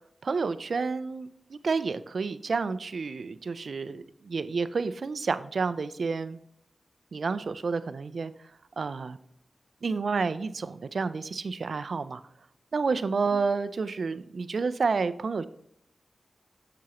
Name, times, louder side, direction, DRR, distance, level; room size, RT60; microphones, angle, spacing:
voice 1, 0.2-6.4 7.1-8.3 8.8-9.2 9.8-12.2 12.7-15.4, right 4 dB, 70° right, 13 dB, 0.4 m, -30 dB
7.5 x 6.9 x 3.0 m, 0.72 s
cardioid pair, 55°, 0 cm